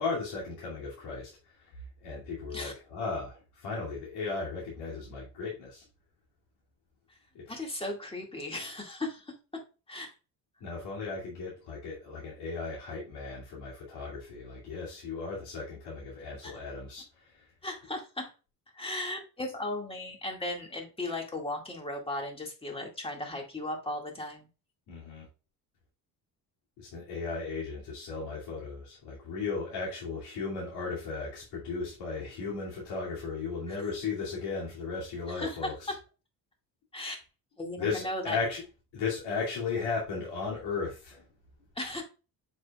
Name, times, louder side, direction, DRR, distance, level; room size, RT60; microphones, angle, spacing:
voice 1, 0.0-5.8 7.3-7.6 10.6-17.5 24.9-25.3 26.8-35.9 37.8-38.6 38.9-41.2, left 4 dB, 85° left, -6 dB, 2.7 m, -36 dB
voice 2, 7.5-9.3 9.9-10.1 16.4-16.5 17.6-18.3 18.7-24.5 33.7-33.8 35.3-36.0 36.9-37.2 37.6-38.4 41.8-42.0, left 1 dB, 15° left, 2 dB, 2.1 m, -36 dB
7.4 x 6.0 x 2.4 m, 0.32 s
cardioid pair, 105°, 39 cm